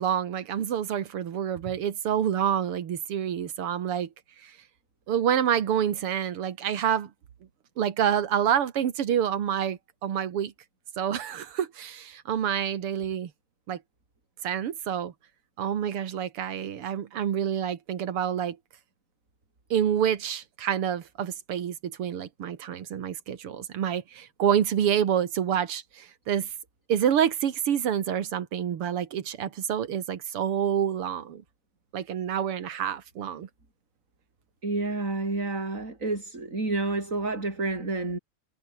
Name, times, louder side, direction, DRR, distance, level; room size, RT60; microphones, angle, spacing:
voice 1, 0.0-4.1 4.4-4.6 5.1-7.1 7.8-10.5 11.0-13.3 13.7-13.8 14.4-15.1 15.6-18.6 19.7-26.5 26.9-31.4 31.9-33.5, right 9 dB, 90° right, 2.5 m, -27 dB
voice 2, 34.6-38.2, right 2 dB, 35° right, 5.3 m, -29 dB
omnidirectional pair, 2.4 m